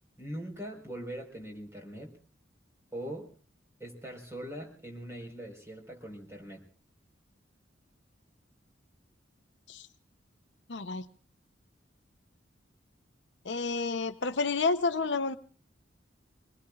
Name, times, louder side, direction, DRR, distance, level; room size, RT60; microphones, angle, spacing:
voice 1, 0.2-2.2 2.9-3.3 3.8-6.6, right 1 dB, 15° right, 0 dB, 4.5 m, -41 dB
voice 2, 10.7-11.0 13.4-15.4, left 4 dB, 70° left, 10 dB, 0.8 m, -30 dB
26.0 x 20.0 x 2.4 m, 0.40 s
head